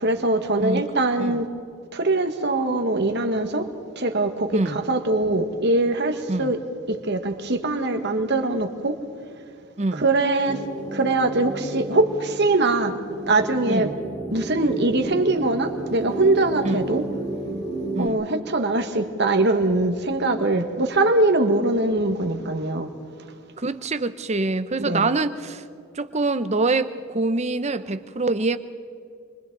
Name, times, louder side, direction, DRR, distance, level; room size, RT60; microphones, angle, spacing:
voice 1, 0.0-1.5 1.9-3.7 4.0-6.6 6.9-8.9 9.9-10.6 10.9-13.9 14.3-17.0 18.0-22.9 24.8-25.1, right 2 dB, 55° right, 1.8 m, -22 dB
voice 2, 4.5-4.8 6.3-6.5 9.8-10.0 13.7-13.9 16.6-16.8 17.9-18.2 23.6-25.6 25.9-28.6, right 3 dB, 30° right, 0.8 m, -25 dB
sound 1, 10.4-18.1, right 2 dB, 25° left, 3.3 m, -32 dB
29.5 x 24.0 x 4.0 m
head